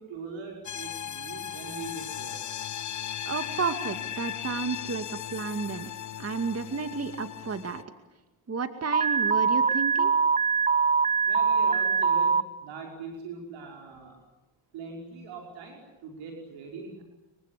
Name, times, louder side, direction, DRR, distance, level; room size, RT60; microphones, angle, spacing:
voice 1, 0.0-2.4 11.3-14.2 14.7-17.0, right 4 dB, 80° right, 1 dB, 5.4 m, -42 dB
sound 1, 0.6-7.8, left 10 dB, 40° left, 0.9 m, -37 dB
voice 2, 3.3-5.9 6.2-7.8 8.5-10.1, right 4 dB, 30° right, 8 dB, 2.3 m, -32 dB
Alarm, 8.9-12.4, right 5 dB, 15° right, 1.2 m, -23 dB
29.0 x 24.0 x 8.5 m, 1.0 s
supercardioid pair, 60°, 45 cm